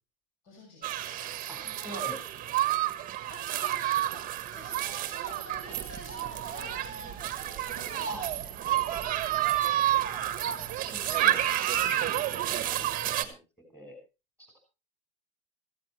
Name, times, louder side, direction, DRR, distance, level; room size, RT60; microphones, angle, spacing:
voice 1, 0.4-2.0 3.3-6.8 7.0-9.5 11.4-11.6, left 1 dB, 40° left, 1 dB, 6.1 m, -50 dB
sound 1, 0.8-13.2, right 12 dB, 25° right, 1.5 m, -30 dB
voice 2, 1.5-2.2 2.4-2.6 8.1-8.3 9.9-10.3 10.9-11.4 12.4-12.9 13.2-13.4 13.7-14.0 14.4-14.6, equal, 5° left, 4 dB, 5.5 m, -44 dB
17.0 x 15.0 x 3.2 m, 0.30 s
supercardioid pair, 160°, 32 cm